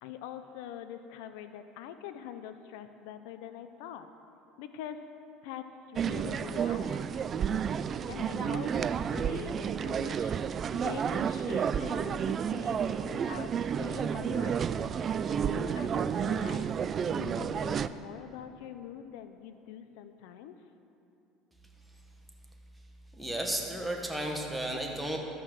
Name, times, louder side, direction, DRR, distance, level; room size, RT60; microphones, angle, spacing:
voice 1, 0.0-4.1 4.6-5.0 5.4-7.4 8.1-10.3 10.7-13.5 13.8-14.7 15.4-16.7 17.1-20.6, left 10 dB, 80° left, 10 dB, 0.6 m, -44 dB
sound 1, 6.0-17.9, right 7 dB, 35° right, 0.3 m, -31 dB
voice 2, 23.1-25.2, right 1 dB, 5° right, 1 dB, 1.4 m, -33 dB
13.0 x 5.8 x 6.5 m, 2.7 s
supercardioid pair, 115°, 0 cm